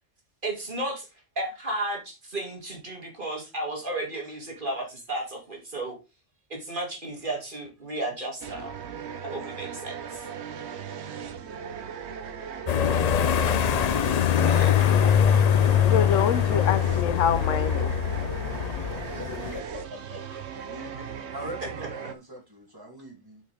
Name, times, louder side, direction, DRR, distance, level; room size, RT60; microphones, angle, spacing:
voice 1, 0.4-1.1 1.4-6.0 6.5-8.7 9.2-10.3 14.3-14.8 19.5-19.6 20.1-20.4 21.6-21.7, right 1 dB, 45° right, 2.6 m, -33 dB
sound 1, 8.4-22.1, right 7 dB, 65° right, 1.1 m, -38 dB
voice 2, 10.0-10.7 19.1-19.6 20.7-21.0 21.3-23.4, right 1 dB, 15° right, 2.5 m, -42 dB
sound 2, 12.7-19.6, left 9 dB, 70° left, 0.3 m, -23 dB
voice 3, 15.8-17.9, left 7 dB, 90° left, 1.1 m, -26 dB
8.9 x 5.5 x 3.4 m
omnidirectional pair, 1.2 m